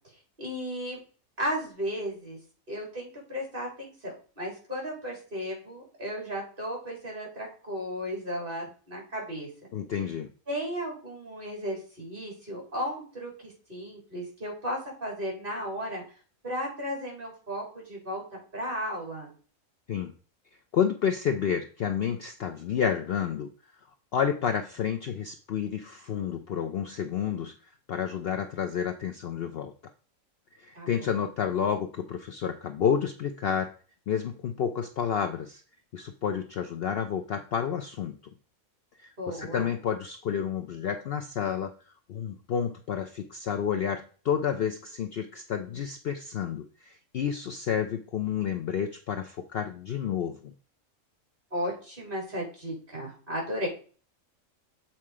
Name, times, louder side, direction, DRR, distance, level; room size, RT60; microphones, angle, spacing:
voice 1, 0.4-1.0 1.4-2.4 2.7-9.5 10.5-16.0 16.4-18.2 18.5-19.3 30.7-31.1 39.2-39.7 51.5-53.7, equal, 40° right, -2 dB, 3.7 m, -35 dB
voice 2, 9.7-10.3 19.9-20.1 20.7-23.5 24.1-27.5 27.9-29.7 30.6-33.7 34.1-35.6 35.9-38.2 39.0-41.7 42.1-50.5, left 8 dB, 60° left, 7 dB, 0.7 m, -30 dB
7.3 x 4.4 x 4.8 m, 0.40 s
omnidirectional pair, 1.4 m